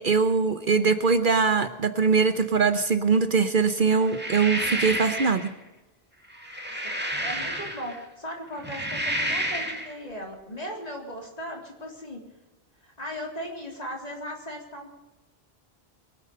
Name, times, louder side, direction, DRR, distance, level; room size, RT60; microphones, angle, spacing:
voice 1, 0.0-5.5, right 5 dB, 55° right, 10 dB, 1.0 m, -22 dB
sound 1, 4.0-5.5 6.3-8.0 8.5-9.9, equal, 10° right, 2.2 m, -30 dB
voice 2, 7.2-12.2 12.8-14.9, equal, 40° left, 0 dB, 3.7 m, -37 dB
23.0 x 9.0 x 6.6 m, 1.1 s
omnidirectional pair, 1.1 m